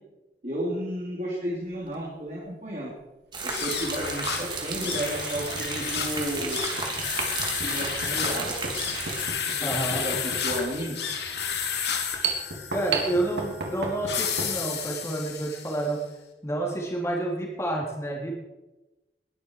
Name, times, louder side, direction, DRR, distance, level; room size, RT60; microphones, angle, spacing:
voice 1, 0.4-2.9 3.4-6.6 7.6-8.8 9.5-11.0, equal, 40° right, -5 dB, 3.6 m, -33 dB
sound 1, 1.7-1.9 3.4-3.5 4.1-4.2 4.7-14.6, right 3 dB, 80° right, 3.3 m, -35 dB
sound 2, 3.3-9.2, right 4 dB, 25° right, 2.7 m, -34 dB
sound 3, 3.4-15.9, left 7 dB, 75° left, 2.6 m, -32 dB
voice 2, 9.6-10.0 12.7-16.0 16.4-18.3, right 2 dB, 15° left, -1 dB, 3.7 m, -29 dB
21.0 x 12.0 x 5.0 m, 1.0 s
head